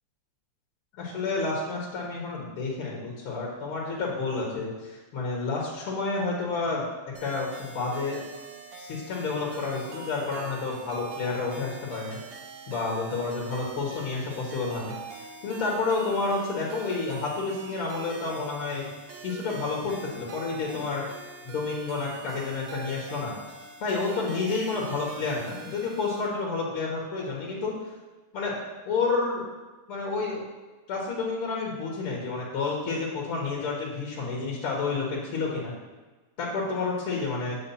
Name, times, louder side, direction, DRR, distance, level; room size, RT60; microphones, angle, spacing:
voice 1, 1.0-6.8 7.2-8.2 8.8-12.2 12.7-14.9 15.4-18.9 19.2-21.0 21.5-23.4 23.8-27.7 28.3-28.5 28.9-29.5 29.9-30.4 30.9-35.7 36.4-37.6, left 3 dB, 80° left, -3 dB, 2.3 m, -30 dB
sound 1, 7.1-26.3, right 4 dB, 65° right, 1.5 m, -44 dB
7.1 x 4.8 x 5.6 m, 1.2 s
omnidirectional pair, 2.4 m